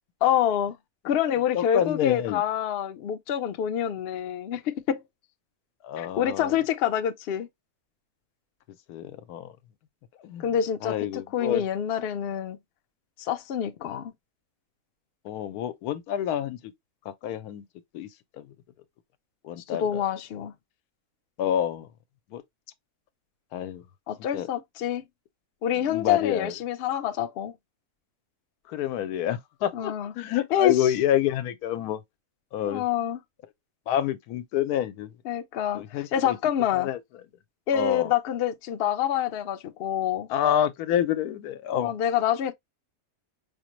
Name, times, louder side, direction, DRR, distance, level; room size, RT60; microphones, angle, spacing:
voice 1, 0.2-0.8 1.0-5.0 6.0-7.5 10.4-12.6 13.2-14.1 19.7-20.5 24.1-25.0 25.6-27.5 29.7-30.1 30.5-30.9 32.7-33.2 35.2-36.9 37.7-40.3 41.7-42.5, left 10 dB, 65° left, 0.6 m, -27 dB
voice 2, 1.5-2.4 5.8-6.6 8.9-9.5 10.2-10.5 10.8-11.6 15.2-16.6 17.1-17.6 17.9-18.1 18.4-18.5 19.4-20.0 21.4-21.9 22.3-22.4 23.5-23.8 24.3-24.5 25.7-26.5 28.7-32.0 32.5-32.8 33.9-35.1 35.7-36.4 36.7-37.0 37.7-38.1 40.3-41.9, left 10 dB, 90° left, 1.1 m, -28 dB
5.0 x 2.1 x 3.0 m
omnidirectional pair, 1.6 m